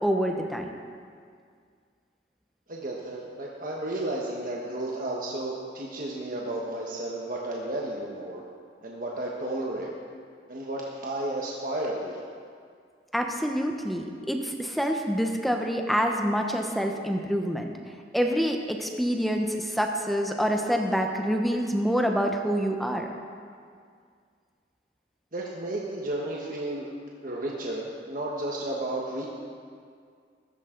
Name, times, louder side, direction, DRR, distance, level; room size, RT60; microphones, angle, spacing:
voice 1, 0.0-0.7 13.1-17.7 18.1-23.1, equal, ahead, 3 dB, 0.9 m, -26 dB
voice 2, 2.7-8.4 8.8-9.9 10.5-12.2 25.3-26.9 27.2-29.3, right 1 dB, 50° right, -3 dB, 1.4 m, -32 dB
15.5 x 14.5 x 3.9 m, 2.1 s
head